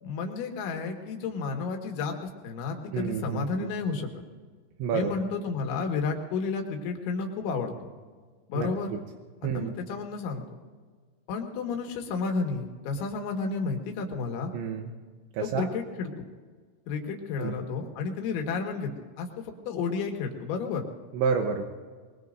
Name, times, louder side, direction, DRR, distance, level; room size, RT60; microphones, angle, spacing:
voice 1, 0.0-4.1 4.9-7.7 8.5-8.9 9.4-10.4 11.3-14.5 15.6-16.3 16.9-20.9, left 4 dB, 75° left, 3 dB, 4.0 m, -31 dB
voice 2, 2.9-3.7 4.8-5.1 8.5-8.7 9.4-9.7 14.5-14.9 15.3-15.7 17.4-17.6 21.1-21.6, right 6 dB, 80° right, 3 dB, 3.1 m, -29 dB
22.5 x 22.5 x 2.6 m, 1.5 s
omnidirectional pair, 5.6 m